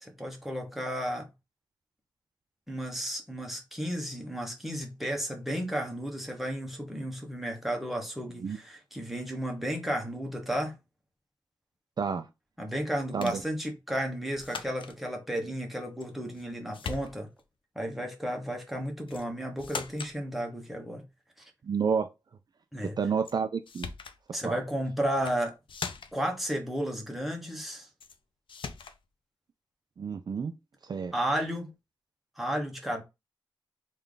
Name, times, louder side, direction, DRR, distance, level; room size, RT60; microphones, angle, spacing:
voice 1, 0.0-1.3 2.7-10.7 12.6-17.3 17.7-21.0 21.4-21.5 22.7-23.0 24.3-25.6 26.1-27.9 31.1-31.7 32.4-33.0, equal, ahead, 1.0 m, -33 dB
voice 2, 12.0-12.3 13.1-13.4 21.6-22.1 23.0-23.9 24.4-24.6 30.0-30.6 30.8-31.1, right 6 dB, 55° right, 0.3 m, -30 dB
sound 1, 13.2-13.5 14.4-15.0 16.0-16.5 16.7-17.4 19.1-19.3 19.6-20.2 23.2-23.4 23.7-24.2 25.1-25.4 25.7-26.3 28.0-28.2 28.5-29.0, left 5 dB, 90° left, 0.4 m, -40 dB
3.3 x 2.4 x 3.7 m
wide cardioid pair, 115°, 8 cm